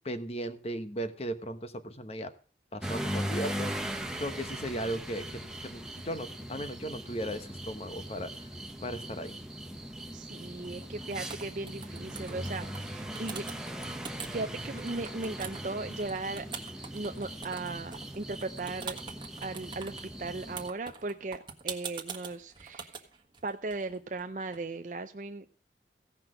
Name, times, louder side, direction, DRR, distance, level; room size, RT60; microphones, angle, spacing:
voice 1, 0.0-2.3 2.7-3.9 4.2-8.5 8.8-9.3, right 1 dB, 35° left, 10 dB, 1.1 m, -37 dB
sound 1, 2.8-20.7, right 1 dB, 5° right, 1.0 m, -39 dB
voice 2, 10.1-13.4 14.3-16.5 16.9-19.0 19.4-23.1 23.4-25.5, right 3 dB, 45° right, 7 dB, 0.6 m, -37 dB
sound 2, 10.6-10.8 11.1-12.8 13.2-14.4 14.8-24.6, right 6 dB, 25° right, 1.5 m, -43 dB
16.0 x 6.0 x 7.7 m, 0.42 s
head